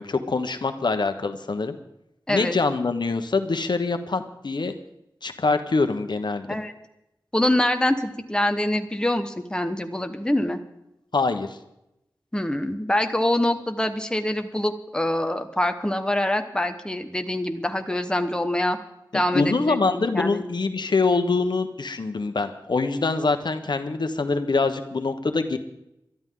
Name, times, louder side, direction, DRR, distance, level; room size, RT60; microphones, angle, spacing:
voice 1, 0.0-1.8 2.3-4.7 5.2-6.6 11.1-11.6 19.1-25.6, left 3 dB, 75° left, 8 dB, 1.1 m, -24 dB
voice 2, 7.3-10.6 12.3-18.8 19.1-20.4, left 1 dB, 10° left, 6 dB, 1.2 m, -25 dB
22.0 x 13.0 x 3.8 m, 0.85 s
wide cardioid pair, 75°, 8 cm